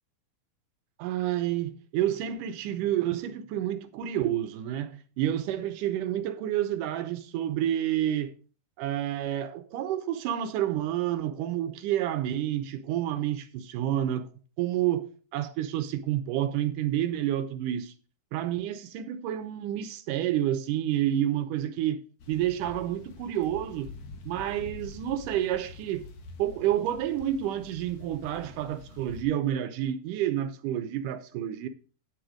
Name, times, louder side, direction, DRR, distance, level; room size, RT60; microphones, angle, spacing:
voice 1, 1.0-8.3 8.8-14.3 14.6-17.9 18.3-22.0 22.3-23.9 24.3-26.1 26.4-31.7, right 12 dB, 80° right, 1.9 m, -29 dB
sound 1, 22.2-29.2, left 3 dB, 60° left, 2.2 m, -46 dB
9.5 x 7.7 x 5.0 m
omnidirectional pair, 4.4 m